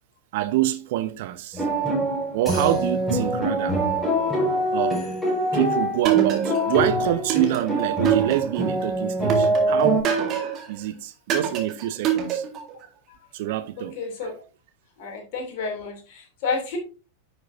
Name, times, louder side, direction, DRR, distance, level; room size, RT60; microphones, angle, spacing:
voice 1, 0.3-1.7 2.3-3.8 4.7-5.1 5.5-10.1 10.7-12.4 13.3-13.9, right 13 dB, 50° right, 1.0 m, -26 dB
sound 1, 1.5-10.0, right 1 dB, 10° left, 4.9 m, -24 dB
sound 2, 6.0-6.8 7.3-8.7 9.3-10.7 11.3-12.7, right 10 dB, 35° right, 2.0 m, -25 dB
voice 2, 13.8-14.3 15.0-16.8, left 4 dB, 45° left, 3.0 m, -31 dB
10.0 x 6.4 x 2.7 m
figure-of-eight pair, 90°, 0 cm